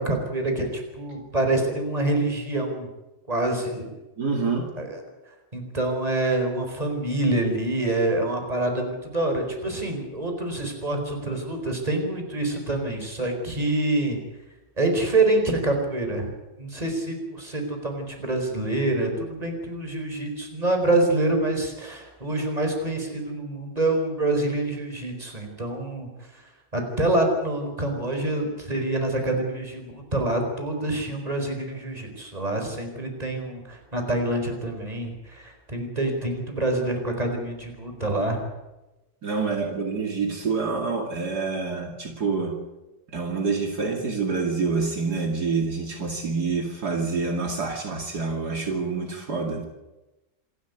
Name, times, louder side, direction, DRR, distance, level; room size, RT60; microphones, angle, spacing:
voice 1, 0.0-2.9 3.3-3.9 4.8-5.0 5.5-14.2 14.8-16.3 16.6-26.4 26.7-38.4, right 2 dB, 20° right, 4 dB, 4.6 m, -26 dB
voice 2, 4.2-4.7 39.2-42.6 43.1-49.6, right 4 dB, 65° right, 2 dB, 3.1 m, -27 dB
27.0 x 12.5 x 9.5 m, 1.0 s
omnidirectional pair, 1.9 m